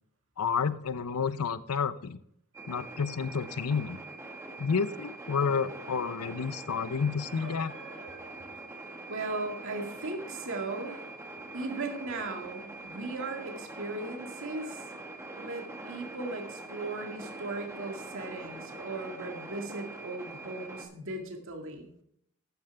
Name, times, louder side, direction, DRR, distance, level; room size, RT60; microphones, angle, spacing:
voice 1, 0.4-2.2 2.7-4.0 4.6-7.7, left 6 dB, 85° left, 15 dB, 0.6 m, -30 dB
sound 1, 2.5-20.8, right 2 dB, 15° right, 1.5 m, -44 dB
voice 2, 7.3-8.4 9.1-11.1 11.5-14.9 15.4-21.9, right 2 dB, 60° right, 3 dB, 2.0 m, -38 dB
11.5 x 9.5 x 3.4 m, 0.71 s
head